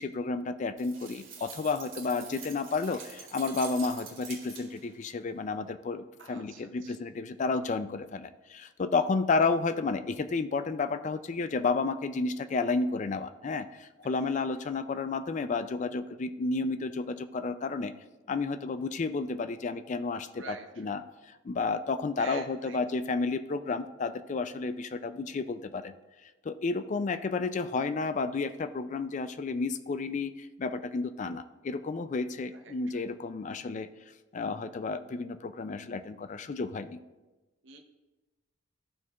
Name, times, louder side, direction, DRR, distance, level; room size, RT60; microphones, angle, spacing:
voice 1, 0.0-17.9 18.3-26.0 26.2-33.9 34.3-37.0, left 4 dB, 40° left, 11 dB, 0.3 m, -31 dB
sound 1, 0.8-4.9, right 6 dB, 80° right, 1.7 m, -45 dB
voice 2, 6.2-7.0 14.0-14.4 20.4-21.0 22.2-23.0 32.5-33.1 37.6-37.8, right 4 dB, 65° right, 3 dB, 0.7 m, -47 dB
13.5 x 4.5 x 2.4 m, 1.1 s
head